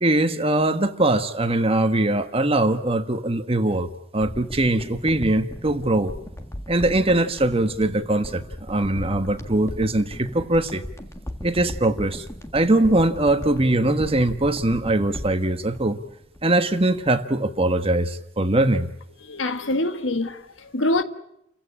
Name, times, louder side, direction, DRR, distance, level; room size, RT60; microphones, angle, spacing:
voice 1, 0.0-6.1 6.7-10.8 11.4-12.2 12.5-16.0 16.4-18.9, right 2 dB, 30° right, 1.4 m, -21 dB
sound 1, 4.2-16.7 17.0-17.1, equal, 15° left, 1.7 m, -37 dB
voice 2, 19.2-21.0, left 2 dB, 85° left, 1.5 m, -25 dB
29.5 x 16.0 x 8.7 m
head